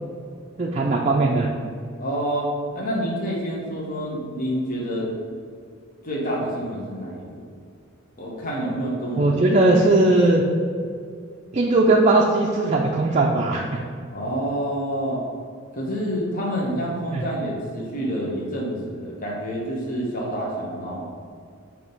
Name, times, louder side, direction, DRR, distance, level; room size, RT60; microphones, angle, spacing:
voice 1, 0.6-1.5 9.2-10.4 11.5-13.8 17.1-17.2, right 2 dB, 35° right, -1 dB, 0.5 m, -19 dB
voice 2, 2.0-5.1 6.0-7.5 8.2-9.7 14.1-15.2 15.7-21.1, equal, 45° left, -3 dB, 1.2 m, -28 dB
7.1 x 3.0 x 5.4 m, 2.3 s
head